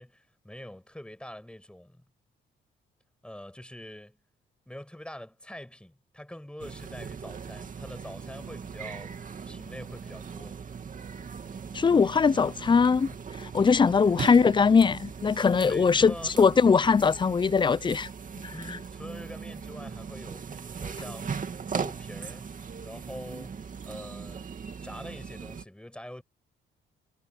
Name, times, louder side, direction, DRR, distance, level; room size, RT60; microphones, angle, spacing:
voice 1, 0.0-2.0 3.2-4.2 4.7-9.1 9.5-10.6 15.6-16.3 18.5-21.4 21.7-22.5 22.8-23.6 23.9-24.4 24.8-26.2, left 1 dB, 5° left, 7.0 m, -44 dB
sound 1, 6.6-25.6, right 6 dB, 40° right, 2.4 m, -39 dB
voice 2, 11.7-13.1 13.5-18.1 18.4-18.5, left 5 dB, 25° left, 0.5 m, -21 dB
cardioid pair, 90°, 20 cm